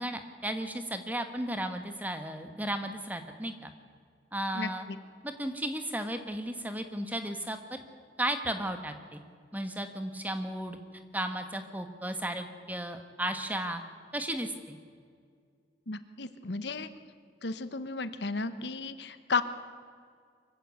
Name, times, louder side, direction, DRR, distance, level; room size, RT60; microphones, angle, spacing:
voice 1, 0.0-3.7 4.3-4.9 5.2-7.8 8.2-9.2 9.5-10.8 11.1-13.8 14.1-14.8, right 1 dB, 10° right, 7 dB, 1.3 m, -34 dB
voice 2, 15.9-16.9 17.4-19.4, left 4 dB, 70° left, 12 dB, 1.1 m, -33 dB
24.0 x 15.5 x 8.3 m, 2.1 s
head